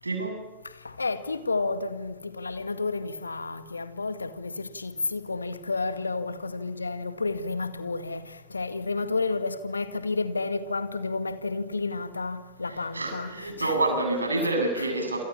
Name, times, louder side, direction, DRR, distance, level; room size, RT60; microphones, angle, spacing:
voice 1, 0.0-0.4 12.9-15.2, right 2 dB, 80° right, 7.9 m, -27 dB
voice 2, 0.8-13.8, left 3 dB, 80° left, 2.0 m, -31 dB
28.5 x 27.5 x 7.3 m
figure-of-eight pair, 90°, 0 cm